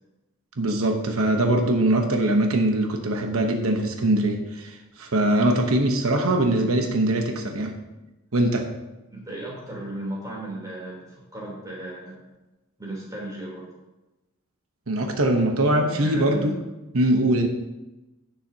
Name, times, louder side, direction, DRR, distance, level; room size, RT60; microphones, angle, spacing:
voice 1, 0.6-7.7 8.3-8.7 14.9-16.5 16.9-17.5, right 1 dB, 80° right, 3 dB, 1.0 m, -22 dB
voice 2, 9.1-12.2 12.8-13.7 15.9-16.6, right 1 dB, 15° right, -4 dB, 3.4 m, -35 dB
16.0 x 7.4 x 2.9 m, 1.0 s
head